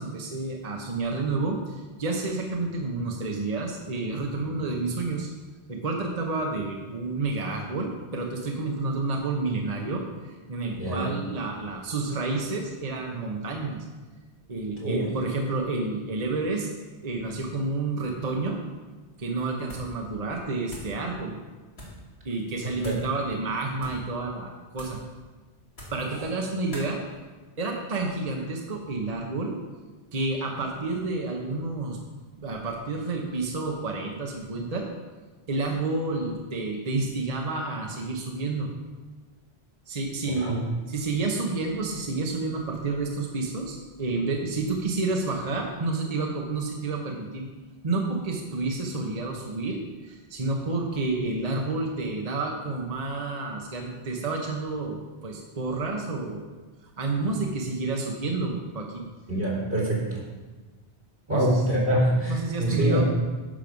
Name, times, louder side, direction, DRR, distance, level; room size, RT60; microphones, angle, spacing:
voice 1, 0.0-5.3 5.7-13.8 14.5-16.7 17.0-18.6 19.2-21.3 22.2-25.0 25.9-27.0 27.6-29.6 30.1-32.0 32.4-34.9 35.5-38.7 39.9-47.5 47.8-56.5 56.8-59.1 61.3-61.5 62.3-63.0, right 3 dB, 40° right, 1 dB, 1.1 m, -30 dB
voice 2, 10.8-11.1 14.8-15.1 22.6-22.9 40.3-40.6 59.3-60.3 61.3-63.0, right 1 dB, 85° right, -7 dB, 3.9 m, -25 dB
sound 1, 19.6-20.0 20.3-21.0 21.7-22.0 22.8-23.1 23.7-24.1 24.7-25.1 25.7-26.1 26.7-26.9, equal, 75° left, 3.3 m, -43 dB
10.0 x 6.5 x 5.4 m, 1.3 s
omnidirectional pair, 1.1 m